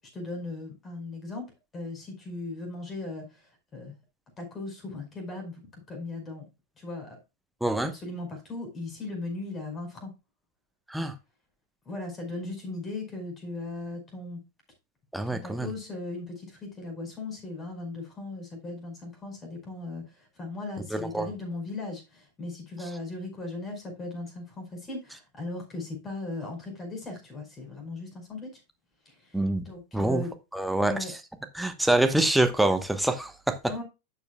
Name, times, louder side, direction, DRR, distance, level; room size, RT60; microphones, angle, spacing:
voice 1, 0.1-1.5 1.7-3.9 4.4-6.5 6.8-7.2 7.8-10.1 11.8-14.4 15.3-28.5 29.0-30.3 30.8-31.1 33.7-33.8, left 2 dB, 20° left, 3 dB, 5.1 m, -38 dB
voice 2, 7.6-7.9 10.9-11.1 15.1-15.7 20.9-21.3 29.3-29.6 29.9-30.2 30.5-30.9 31.5-33.6, right 1 dB, 5° right, 7 dB, 1.1 m, -25 dB
12.0 x 6.9 x 2.3 m, 0.26 s
figure-of-eight pair, 90°, 0 cm